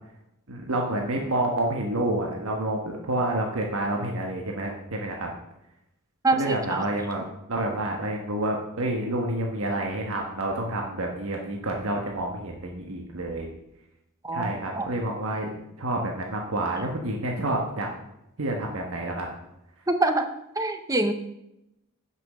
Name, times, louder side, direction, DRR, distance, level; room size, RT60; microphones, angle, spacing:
voice 1, 0.5-5.3 6.3-7.2 7.5-13.5 14.3-15.5 15.8-17.9 18.4-19.3, right 1 dB, 70° right, 1 dB, 1.2 m, -28 dB
voice 2, 6.2-6.8 14.2-14.5 14.8-14.9 19.9-20.3 20.6-21.1, right 2 dB, 15° right, 7 dB, 0.6 m, -24 dB
9.6 x 6.0 x 6.1 m, 0.87 s
head